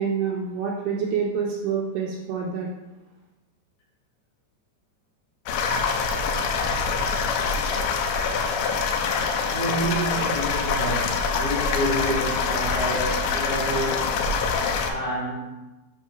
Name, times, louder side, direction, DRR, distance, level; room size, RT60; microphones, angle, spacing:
voice 1, 0.0-2.7, right 6 dB, 80° right, -2 dB, 2.5 m, -27 dB
sound 1, 5.5-14.9, left 5 dB, 85° left, 2.4 m, -25 dB
voice 2, 9.5-14.2 14.8-15.7, right 1 dB, 60° left, -6 dB, 4.1 m, -29 dB
7.9 x 3.5 x 5.5 m, 1.1 s
omnidirectional pair, 5.2 m